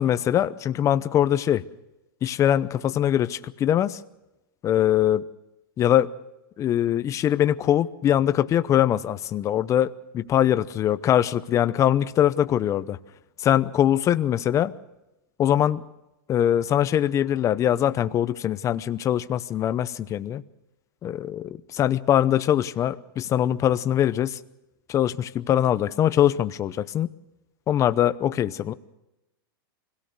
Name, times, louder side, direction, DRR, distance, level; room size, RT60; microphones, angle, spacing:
voice 1, 0.0-1.6 2.2-4.0 4.6-5.2 5.8-6.1 6.6-13.0 13.4-14.7 15.4-15.8 16.3-20.4 21.0-24.4 24.9-27.1 27.7-28.7, left 11 dB, 25° left, 14 dB, 0.8 m, -22 dB
24.5 x 17.5 x 6.5 m, 0.95 s
hypercardioid pair, 135°, 12 cm